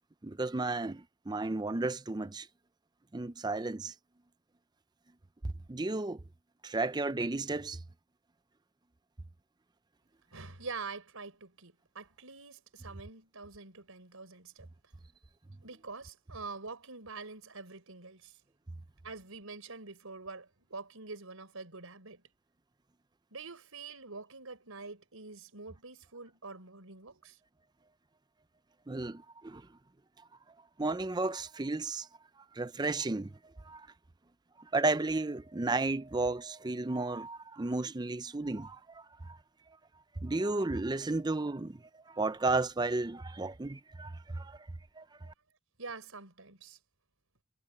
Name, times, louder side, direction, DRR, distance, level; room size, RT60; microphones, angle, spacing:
voice 1, 0.2-2.5 3.1-3.9 5.7-6.2 6.6-7.8 28.9-29.7 30.8-32.1 32.5-33.9 34.6-39.4 40.2-44.7 45.0-45.1, right 3 dB, 20° right, 0.5 m, -33 dB
voice 2, 10.3-14.7 15.6-18.4 19.0-22.2 23.3-27.4 45.8-46.8, right 4 dB, 85° right, 4.6 m, -45 dB
head